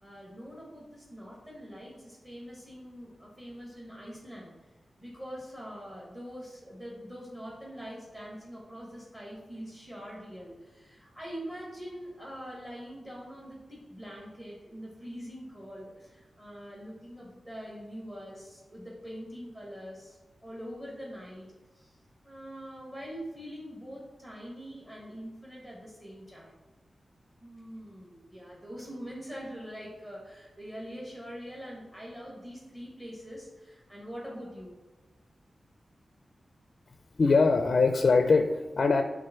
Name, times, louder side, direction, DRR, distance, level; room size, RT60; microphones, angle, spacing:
voice 1, 0.0-4.5 5.0-21.5 21.7-22.0 22.2-26.5 27.4-34.7, equal, 20° right, -4 dB, 1.4 m, -44 dB
voice 2, 37.2-39.0, left 4 dB, 50° left, 6 dB, 0.4 m, -22 dB
6.6 x 3.6 x 5.8 m, 1.2 s
wide cardioid pair, 170°, 0 cm